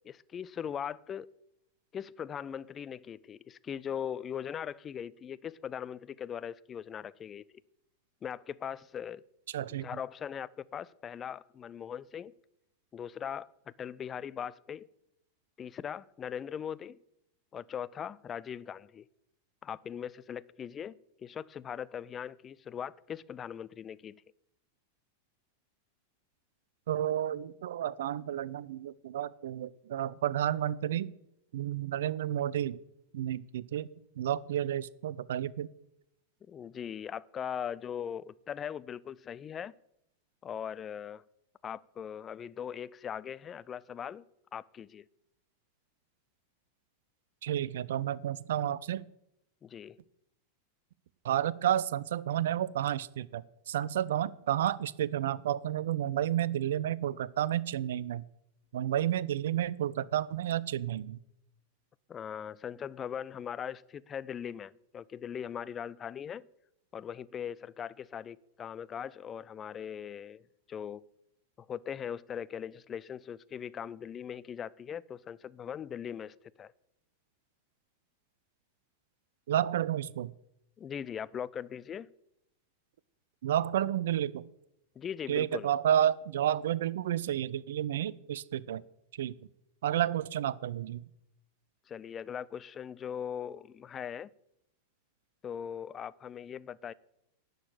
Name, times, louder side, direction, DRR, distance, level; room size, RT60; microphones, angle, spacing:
voice 1, 0.0-1.3 1.9-7.5 8.2-9.2 9.8-12.3 12.9-14.9 15.6-17.0 17.5-19.0 19.6-24.2 36.5-39.7 40.4-41.2 41.6-44.2 44.5-45.0 49.6-50.0 62.1-66.5 66.9-71.0 71.7-76.7 80.8-82.1 85.0-85.7 91.9-94.3 95.4-96.9, left 8 dB, 25° left, 0.4 m, -40 dB
voice 2, 9.5-9.9 26.9-31.1 31.5-32.8 33.1-33.9 34.2-35.7 47.4-49.0 51.2-58.2 58.7-61.2 79.5-80.3 83.4-84.4 85.3-88.8 89.2-89.3 89.8-91.0, right 11 dB, 60° right, 0.5 m, -31 dB
11.5 x 6.6 x 9.0 m
figure-of-eight pair, 90°, 0 cm